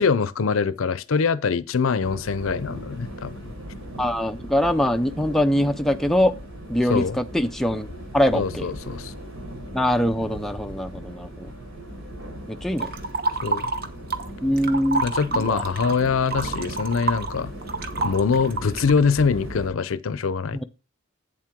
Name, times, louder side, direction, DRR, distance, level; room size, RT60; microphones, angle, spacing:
voice 1, 0.0-3.4 6.9-7.2 8.3-9.1 13.4-13.7 15.0-17.5 18.0-20.6, left 5 dB, 80° left, 0.5 m, -23 dB
sound 1, 2.0-19.7, right 1 dB, 85° right, 3.6 m, -38 dB
voice 2, 4.0-6.3 6.7-7.9 8.1-8.7 9.7-11.5 12.5-12.9 14.4-15.6 20.5-20.6, equal, ahead, 0.3 m, -23 dB
sound 2, 12.8-14.3 14.6-19.0, right 3 dB, 45° right, 0.9 m, -28 dB
8.5 x 7.5 x 3.6 m
head